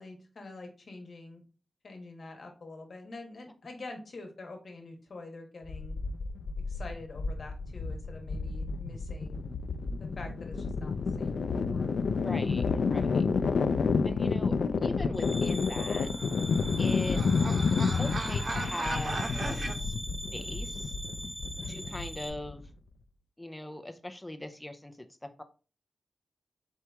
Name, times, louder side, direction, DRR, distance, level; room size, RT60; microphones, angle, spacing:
voice 1, 0.0-1.4 1.8-6.0 6.7-9.4 10.0-11.9 14.7-14.8 21.6-21.9, left 2 dB, 60° left, 3 dB, 1.1 m, -46 dB
sound 1, 5.6-22.7, left 5 dB, 80° left, 0.3 m, -30 dB
voice 2, 12.1-13.2 14.0-16.1 16.8-17.2 18.0-19.9 20.3-20.9 21.7-22.7 23.4-25.4, left 1 dB, 15° left, 7 dB, 0.4 m, -40 dB
sound 2, 15.1-22.3, equal, 10° right, 1.1 m, -41 dB
sound 3, 15.9-19.7, right 3 dB, 55° right, 0.6 m, -38 dB
4.4 x 2.9 x 3.4 m, 0.36 s
wide cardioid pair, 100°, 0 cm